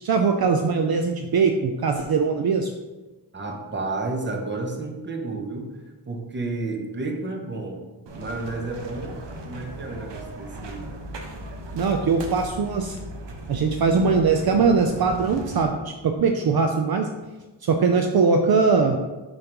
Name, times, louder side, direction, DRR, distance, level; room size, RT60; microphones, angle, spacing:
voice 1, 0.0-2.7 11.7-13.0 13.5-17.1 17.6-19.0, right 5 dB, 60° right, 5 dB, 0.5 m, -21 dB
voice 2, 3.3-5.7 6.1-7.8 8.2-9.2 9.4-10.9, right 3 dB, 25° right, 3 dB, 0.8 m, -31 dB
sound 1, 8.1-15.6, right 1 dB, 75° right, 0.9 m, -37 dB
6.9 x 5.2 x 3.0 m, 1.2 s
wide cardioid pair, 145°, 43 cm